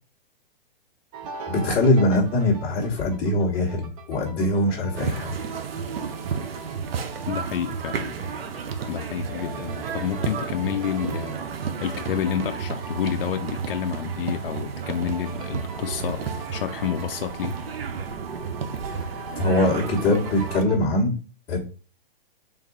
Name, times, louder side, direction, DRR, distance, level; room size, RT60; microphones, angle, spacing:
sound 1, 1.1-20.9, right 4 dB, 35° right, 0.8 m, -42 dB
voice 1, 1.5-5.3 19.0-21.2 21.5-21.6, left 1 dB, 20° left, 1.1 m, -22 dB
sound 2, 5.0-20.6, right 6 dB, 75° right, 0.8 m, -32 dB
voice 2, 7.3-8.2 8.9-17.6, left 9 dB, 65° left, 0.4 m, -29 dB
3.7 x 2.6 x 3.9 m
hypercardioid pair, 145°, 30 cm